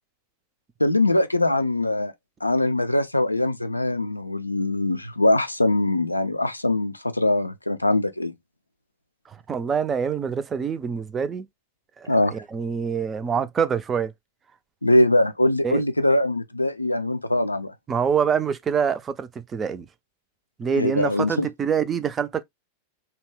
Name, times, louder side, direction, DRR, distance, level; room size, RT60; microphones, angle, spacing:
voice 1, 0.8-2.1 2.4-8.3 12.1-12.3 14.8-17.7 20.7-21.5, left 1 dB, 85° left, 0.3 m, -22 dB
voice 2, 9.5-11.5 12.0-14.1 15.6-15.8 17.9-19.9 20.6-22.4, right 7 dB, 20° right, 0.4 m, -25 dB
2.7 x 2.1 x 3.1 m
figure-of-eight pair, 90°, 0 cm